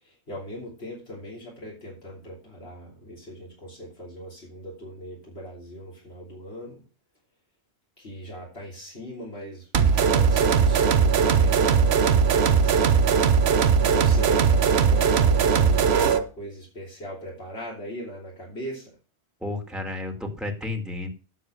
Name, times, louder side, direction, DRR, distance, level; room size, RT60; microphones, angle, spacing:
voice 1, 0.0-6.8 8.0-9.7 10.1-13.1 13.8-18.9, equal, 75° left, -4 dB, 3.5 m, -39 dB
sound 1, 9.7-16.3, right 6 dB, 75° right, 1.1 m, -19 dB
voice 2, 19.4-21.1, left 2 dB, ahead, 3 dB, 2.0 m, -32 dB
8.2 x 7.1 x 6.4 m, 0.36 s
omnidirectional pair, 1.1 m